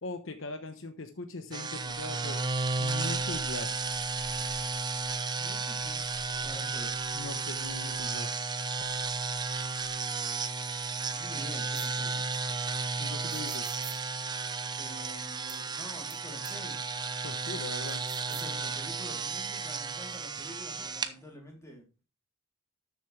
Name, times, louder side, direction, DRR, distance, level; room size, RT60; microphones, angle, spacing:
voice 1, 0.0-2.4 2.8-3.7 7.1-8.3 13.0-13.7 17.2-18.0, left 2 dB, 60° left, 7 dB, 1.0 m, -40 dB
sound 1, 1.5-21.1, right 4 dB, 20° right, 0.7 m, -33 dB
voice 2, 5.4-6.0 6.4-7.0 11.1-12.2 14.8-16.9 18.3-21.8, left 1 dB, 15° left, 0 dB, 3.4 m, -47 dB
sound 2, 11.7-11.9 13.3-14.0 15.5-15.6 16.1-16.2 16.4-16.5 17.9-18.5, right 12 dB, 55° right, 1.5 m, -45 dB
13.0 x 7.1 x 3.3 m, 0.32 s
head